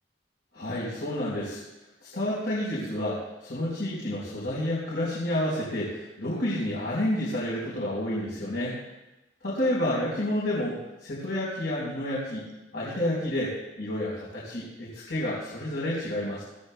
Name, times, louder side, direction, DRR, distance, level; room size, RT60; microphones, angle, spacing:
voice 1, 0.5-1.6 2.0-8.8 9.4-12.4 12.7-13.5 13.8-16.4, left 1 dB, 75° left, -6 dB, 4.4 m, -30 dB
22.5 x 15.0 x 2.3 m, 0.99 s
head